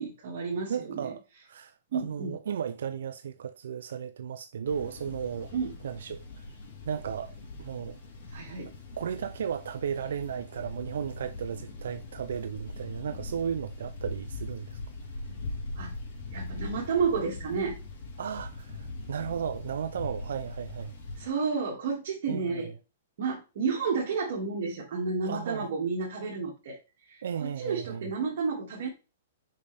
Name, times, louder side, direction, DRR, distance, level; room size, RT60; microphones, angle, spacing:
voice 1, 0.0-1.1 1.9-2.4 5.5-5.7 8.3-8.7 15.8-15.9 16.3-17.8 21.2-22.7 23.2-26.8 27.1-28.9, right 5 dB, 60° right, 2.1 m, -31 dB
voice 2, 0.7-5.5 5.8-6.5 6.8-8.0 9.0-14.8 18.2-20.9 22.3-22.7 25.2-25.7 27.2-28.1, right 8 dB, 80° right, 0.5 m, -35 dB
sound 1, 4.6-21.3, left 2 dB, 50° left, 3.4 m, -41 dB
5.6 x 5.2 x 3.4 m
hypercardioid pair, 155°, 0 cm